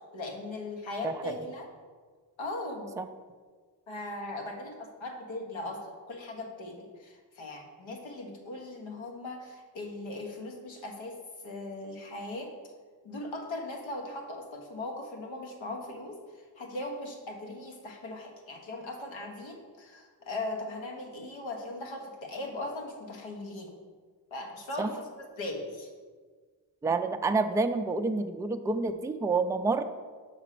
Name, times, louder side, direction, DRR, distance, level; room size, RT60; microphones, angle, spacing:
voice 1, 0.1-1.7 2.4-2.9 3.9-11.2 11.4-12.5 13.0-23.8 24.3-25.9, left 2 dB, 85° left, 2 dB, 1.4 m, -39 dB
voice 2, 26.8-29.8, right 3 dB, 10° right, 7 dB, 0.3 m, -28 dB
6.0 x 5.1 x 5.8 m, 1.5 s
cardioid pair, 85°, 45 cm